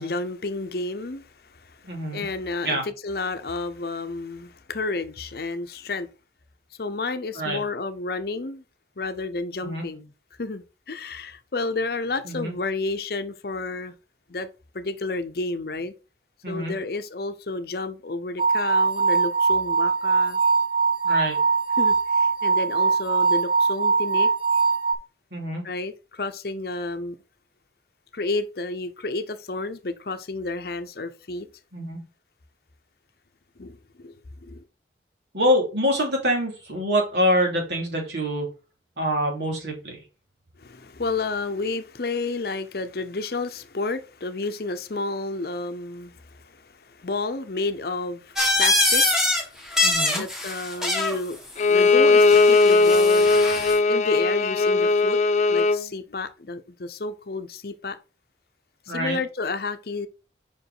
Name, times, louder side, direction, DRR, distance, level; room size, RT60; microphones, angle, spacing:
voice 1, 0.0-6.1 6.8-8.6 9.0-10.1 10.4-13.9 14.3-14.5 14.7-15.9 16.5-20.4 21.8-24.3 25.6-27.2 28.1-31.5 33.6-34.2 34.4-34.6 40.6-49.6 50.2-51.4 51.7-53.3 53.9-55.2 55.5-58.0 58.9-60.1, left 3 dB, 55° left, 0.7 m, -31 dB
voice 2, 1.8-2.3 2.6-2.8 7.3-7.6 9.6-9.9 12.2-12.5 16.4-16.8 21.0-21.4 25.3-25.6 31.7-32.0 35.3-38.5 39.0-40.0 49.8-50.2 58.9-59.2, equal, 70° right, 2.8 m, -25 dB
sound 1, 18.4-24.9, right 4 dB, 30° right, 1.0 m, -21 dB
sound 2, 48.4-49.4 49.7-51.2 52.2-53.8, left 2 dB, 5° right, 1.5 m, -23 dB
Bowed string instrument, 51.6-55.8, left 3 dB, 40° left, 0.3 m, -18 dB
5.3 x 5.1 x 4.8 m
head